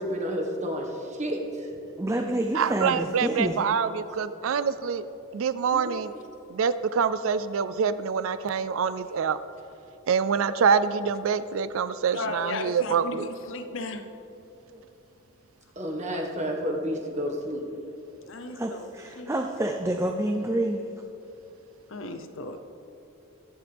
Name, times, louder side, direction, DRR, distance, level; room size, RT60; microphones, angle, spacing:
voice 1, 0.0-1.7 15.7-17.6, equal, 35° right, 1 dB, 1.5 m, -30 dB
voice 2, 2.0-3.6 14.7-14.8 18.5-20.8, right 1 dB, 15° right, 3 dB, 0.5 m, -28 dB
voice 3, 2.5-5.1 5.3-6.1 6.5-9.4 10.1-13.3, right 6 dB, 70° right, 14 dB, 0.4 m, -25 dB
voice 4, 12.1-14.0 18.3-18.9 19.2-19.3 21.9-22.6, left 2 dB, 65° left, 8 dB, 0.8 m, -35 dB
23.0 x 7.8 x 3.5 m, 3.0 s
head